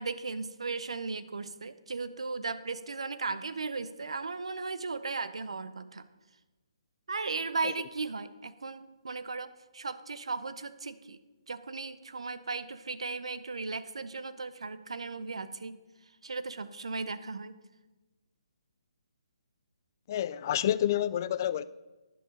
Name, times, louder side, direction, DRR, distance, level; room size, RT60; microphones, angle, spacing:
voice 1, 0.0-6.1 7.1-11.2 11.5-15.8 16.2-17.6, right 4 dB, 75° right, 0.6 m, -36 dB
voice 2, 20.1-21.6, left 11 dB, 35° left, 0.4 m, -28 dB
10.5 x 6.3 x 5.0 m
figure-of-eight pair, 145°, 3 cm